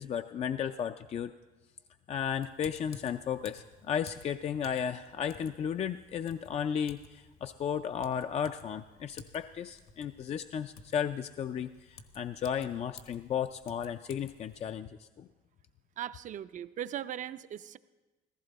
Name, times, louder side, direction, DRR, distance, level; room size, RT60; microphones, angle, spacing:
voice 1, 0.0-1.3 2.1-15.3, left 8 dB, 40° left, 9 dB, 0.4 m, -34 dB
Typing, 2.4-14.7, left 4 dB, 65° left, 1.2 m, -55 dB
voice 2, 16.0-17.8, right 11 dB, 50° right, 13 dB, 0.5 m, -39 dB
15.5 x 14.5 x 4.0 m, 1.1 s
cardioid pair, 110°, 17 cm